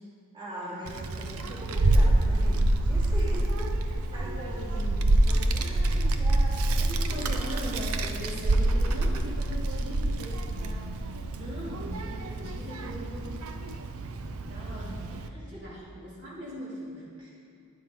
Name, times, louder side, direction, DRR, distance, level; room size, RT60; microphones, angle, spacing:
voice 1, 0.3-7.8 14.6-14.7 15.3-15.7 17.2-17.3, equal, 25° right, -8 dB, 2.8 m, -42 dB
Child speech kid speaking, 0.8-15.3, right 2 dB, 75° right, 0.7 m, -27 dB
voice 2, 6.9-13.4 14.5-17.1, equal, 55° right, -7 dB, 2.6 m, -41 dB
12.0 x 11.0 x 3.8 m, 2.5 s
head